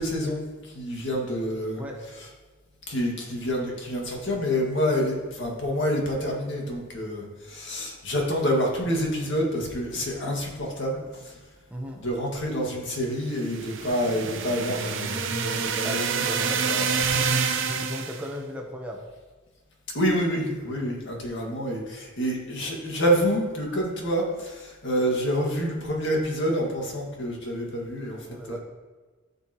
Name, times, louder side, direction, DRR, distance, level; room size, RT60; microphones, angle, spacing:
voice 1, 0.0-1.8 2.9-11.3 12.0-16.1 17.3-17.7 19.9-28.2 28.5-28.6, equal, 60° left, -1 dB, 2.0 m, -27 dB
voice 2, 11.7-12.0 15.8-16.9 17.6-19.0 20.7-20.9 28.3-28.6, equal, 5° right, -1 dB, 0.9 m, -36 dB
sound 1, 13.3-18.3, right 5 dB, 60° right, 0.8 m, -27 dB
13.5 x 5.7 x 3.0 m, 1.3 s
head